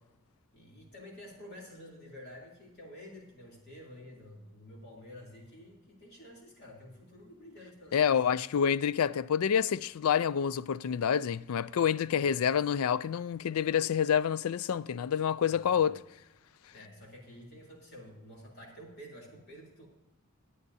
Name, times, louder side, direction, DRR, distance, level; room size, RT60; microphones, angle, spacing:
voice 1, 0.5-8.5 15.4-16.0 16.7-19.9, left 1 dB, 45° left, 3.1 m, -50 dB
voice 2, 7.9-16.0, left 8 dB, 80° left, 0.4 m, -28 dB
20.5 x 8.7 x 2.7 m
head